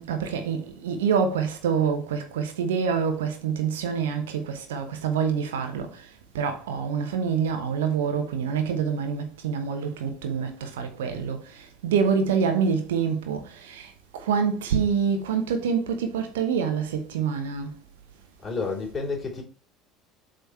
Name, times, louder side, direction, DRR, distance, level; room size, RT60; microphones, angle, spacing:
voice 1, 0.0-17.8, right 6 dB, 70° right, 1.2 m, -26 dB
voice 2, 18.4-19.4, left 4 dB, 20° left, 3.6 m, -30 dB
8.0 x 4.0 x 4.5 m
figure-of-eight pair, 65°, 0 cm